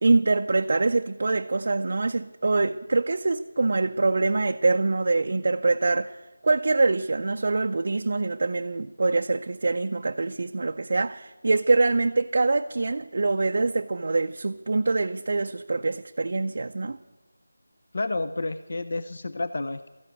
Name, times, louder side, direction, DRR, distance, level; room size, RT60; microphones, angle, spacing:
voice 1, 0.0-6.2 6.4-17.0, right 3 dB, 45° right, 0.5 m, -24 dB
voice 2, 17.9-19.9, left 2 dB, 45° left, 0.6 m, -30 dB
14.0 x 11.0 x 9.1 m
figure-of-eight pair, 175°, 0 cm